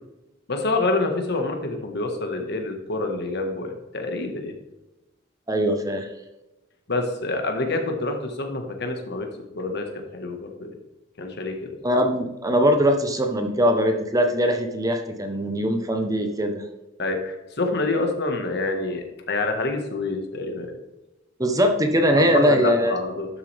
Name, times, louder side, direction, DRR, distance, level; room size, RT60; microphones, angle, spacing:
voice 1, 0.5-4.5 6.9-9.3 9.5-9.9 10.1-10.8 11.2-11.8 17.0-20.7 22.1-23.3, left 2 dB, 55° left, 4 dB, 1.6 m, -27 dB
voice 2, 5.5-6.1 11.8-16.6 21.4-23.0, equal, 20° right, 5 dB, 0.9 m, -21 dB
11.5 x 7.4 x 3.4 m, 1.0 s
head